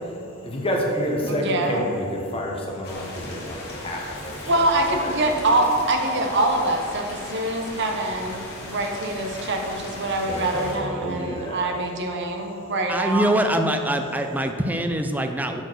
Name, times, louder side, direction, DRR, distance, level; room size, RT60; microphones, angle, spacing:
voice 1, 0.0-5.1 10.2-11.7 12.5-12.6, equal, 25° left, -1 dB, 1.1 m, -29 dB
voice 2, 1.3-1.9 4.5-13.3, right 2 dB, 55° right, 3 dB, 0.8 m, -24 dB
sound 1, 2.8-10.8, left 2 dB, 50° left, 1.6 m, -37 dB
voice 3, 12.9-15.6, right 1 dB, 10° right, 6 dB, 0.3 m, -23 dB
5.9 x 4.6 x 6.4 m, 2.6 s
head